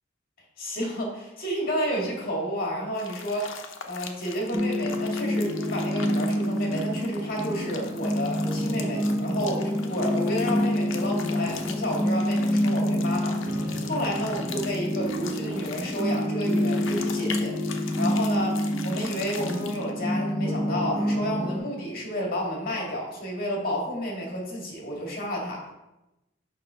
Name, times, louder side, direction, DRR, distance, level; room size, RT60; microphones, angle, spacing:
voice 1, 0.6-3.5 3.8-25.6, equal, 50° left, -1 dB, 2.0 m, -31 dB
sound 1, 2.9-19.9, left 6 dB, 85° left, 0.7 m, -41 dB
sound 2, 4.5-21.6, equal, 15° right, 0.6 m, -27 dB
6.7 x 5.4 x 3.7 m, 0.97 s
head